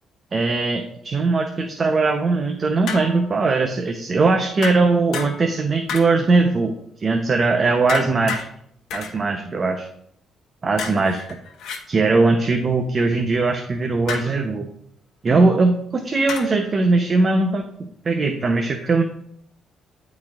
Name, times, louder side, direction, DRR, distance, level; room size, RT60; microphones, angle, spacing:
voice 1, 0.3-6.7 7.0-8.4 8.9-9.9 10.6-11.2 11.9-14.7 15.2-17.7 18.0-19.0, right 3 dB, 40° right, 5 dB, 0.6 m, -20 dB
sound 1, 2.9-3.4 4.6-5.6 5.9-6.4 7.9-8.5 8.9-9.2 10.8-11.8 14.1-14.4 16.3-16.6, left 5 dB, 80° left, 0.9 m, -31 dB
11.0 x 4.1 x 2.4 m, 0.69 s
cardioid pair, 90°, 0 cm